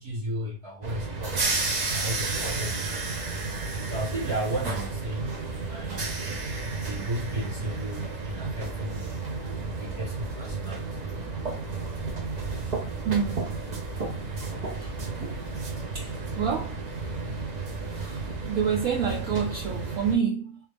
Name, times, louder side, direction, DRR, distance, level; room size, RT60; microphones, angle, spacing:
voice 1, 0.0-1.6 1.9-3.5 3.8-5.3 5.7-6.1 6.8-9.1 9.8-11.0, right 1 dB, 40° right, 1.2 m, -34 dB
sound 1, 0.8-20.2, right 3 dB, 90° right, 0.3 m, -32 dB
voice 2, 13.0-13.5 14.6-14.9 15.2-15.5 15.9-16.8 17.9-20.6, right 7 dB, 70° right, 0.9 m, -29 dB
3.0 x 2.7 x 3.3 m
omnidirectional pair, 1.8 m